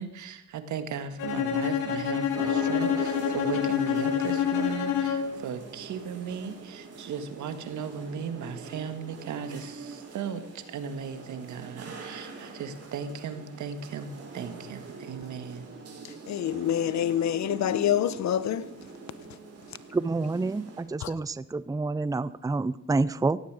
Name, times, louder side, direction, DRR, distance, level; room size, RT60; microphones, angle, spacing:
voice 1, 0.0-15.7, right 6 dB, 75° right, 2.0 m, -37 dB
Bowed string instrument, 1.2-5.4, left 8 dB, 85° left, 3.2 m, -27 dB
sound 1, 2.3-20.8, right 4 dB, 55° right, 7.3 m, -43 dB
voice 2, 16.3-18.7 21.0-21.1, left 10 dB, 65° left, 1.0 m, -26 dB
voice 3, 19.9-23.4, right 3 dB, 10° right, 0.6 m, -28 dB
17.5 x 15.5 x 5.0 m
cardioid pair, 90°, 30 cm